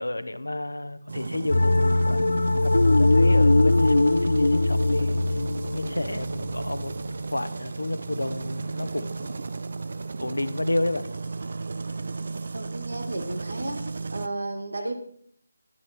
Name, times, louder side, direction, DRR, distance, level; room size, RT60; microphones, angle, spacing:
voice 1, 0.0-2.2 2.6-5.2 5.7-6.9 7.3-9.4 10.2-11.0, left 1 dB, 90° left, 12 dB, 0.9 m, -30 dB
sound 1, 1.1-14.3, right 3 dB, 55° right, 0.6 m, -34 dB
sound 2, 1.5-6.8, left 2 dB, 75° left, 0.3 m, -21 dB
voice 2, 12.5-13.8 14.1-14.9, right 2 dB, 75° right, 6 dB, 2.0 m, -33 dB
10.0 x 9.9 x 4.5 m, 0.64 s
figure-of-eight pair, 160°, 0 cm